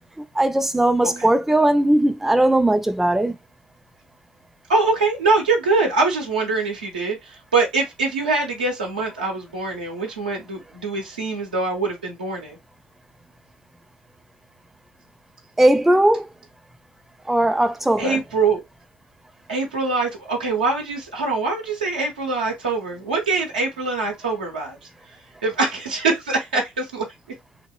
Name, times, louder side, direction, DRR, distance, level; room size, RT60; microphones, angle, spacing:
voice 1, 0.4-3.4 15.6-16.3 17.3-18.2, right 1 dB, 5° right, 0.4 m, -18 dB
voice 2, 4.7-12.6 18.0-18.6 19.5-24.8 25.4-27.0, right 3 dB, 85° right, 0.7 m, -23 dB
2.8 x 2.0 x 2.3 m
hypercardioid pair, 50°, 5 cm